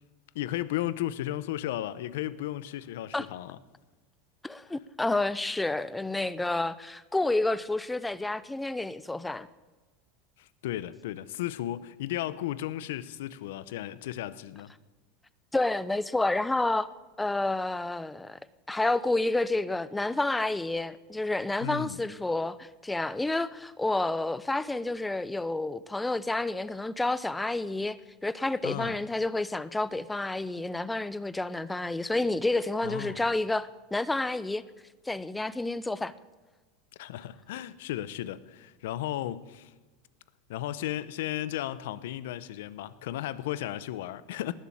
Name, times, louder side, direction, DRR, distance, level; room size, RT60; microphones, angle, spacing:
voice 1, 0.3-3.6 10.4-14.7 21.6-22.0 28.6-29.0 32.8-33.2 37.0-39.7 40.5-44.5, left 13 dB, 80° left, 0.9 m, -34 dB
voice 2, 4.4-9.5 15.5-16.9 17.2-18.4 18.7-34.6 35.1-36.1, left 2 dB, 5° left, 0.5 m, -29 dB
19.0 x 7.5 x 8.7 m
supercardioid pair, 160°, 0 cm